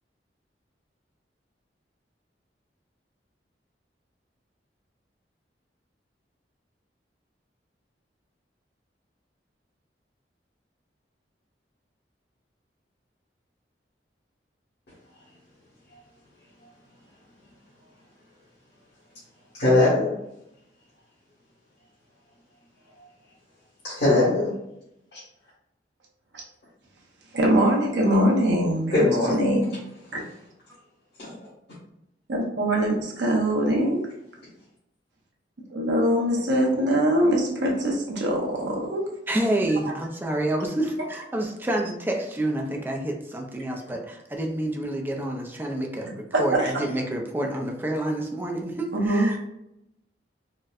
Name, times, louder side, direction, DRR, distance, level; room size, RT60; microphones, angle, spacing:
voice 1, 19.5-20.1 22.9-23.0 23.8-24.5 25.1-25.2 28.9-29.6 31.2-31.3, left 2 dB, 65° left, -11 dB, 1.4 m, -21 dB
voice 2, 27.3-29.7 30.1-30.2 32.3-34.1 35.7-39.1 46.3-46.7 49.0-49.4, right 1 dB, 85° right, -1 dB, 0.8 m, -23 dB
voice 3, 39.3-49.4, right 1 dB, 10° right, 1 dB, 0.4 m, -28 dB
4.1 x 2.1 x 2.4 m, 0.82 s
head